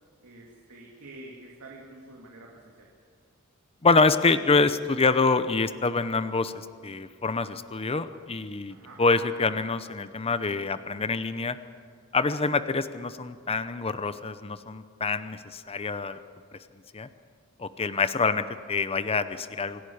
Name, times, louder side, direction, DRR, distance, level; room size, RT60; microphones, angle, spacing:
voice 1, 0.2-2.9 8.7-9.0, right 2 dB, 70° right, -2 dB, 2.7 m, -47 dB
voice 2, 3.8-11.6 12.1-16.2 16.9-17.1 17.6-19.8, left 4 dB, 25° left, 12 dB, 0.7 m, -26 dB
26.0 x 11.5 x 9.5 m, 2.1 s
head